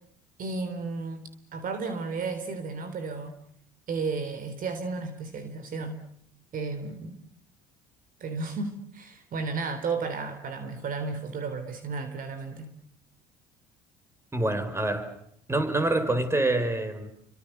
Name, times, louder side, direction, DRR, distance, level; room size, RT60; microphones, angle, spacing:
voice 1, 0.4-3.4 3.9-6.0 6.5-7.2 8.2-12.7, right 4 dB, 50° right, 10 dB, 3.6 m, -33 dB
voice 2, 14.3-15.2 15.5-17.1, right 2 dB, 15° right, 10 dB, 5.2 m, -26 dB
29.5 x 25.0 x 6.7 m, 0.66 s
hypercardioid pair, 75°, 18 cm